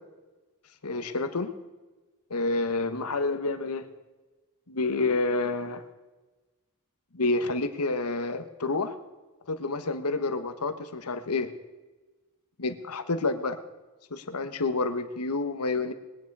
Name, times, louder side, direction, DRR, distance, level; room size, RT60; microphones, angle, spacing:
voice 1, 0.8-1.5 2.3-3.8 4.7-5.8 7.1-8.9 9.5-11.5 12.6-13.6 14.1-15.9, left 3 dB, 85° left, 10 dB, 1.2 m, -29 dB
21.0 x 9.9 x 4.7 m, 1.2 s
head